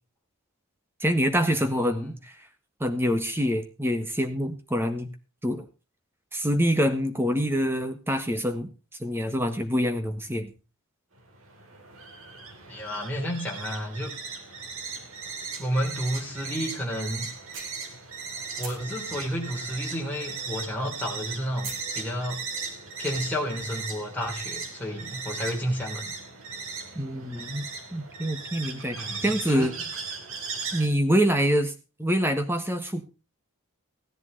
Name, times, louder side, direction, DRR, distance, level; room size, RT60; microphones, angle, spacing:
voice 1, 1.0-2.1 2.8-5.1 5.4-5.6 6.3-8.7 9.0-10.5 26.9-27.6 27.9-29.7 30.7-31.7 32.0-33.1, equal, 10° right, 7 dB, 1.4 m, -25 dB
sound 1, 11.2-30.9, right 5 dB, 80° right, 2.7 m, -38 dB
voice 2, 12.7-14.1 15.6-17.3 18.6-22.4 23.0-26.1 28.9-29.7, equal, 10° left, -2 dB, 3.4 m, -31 dB
sound 2, 17.5-18.3 18.6-20.5 20.7-21.9, right 4 dB, 60° right, 4.3 m, -41 dB
16.0 x 11.0 x 4.0 m, 0.31 s
head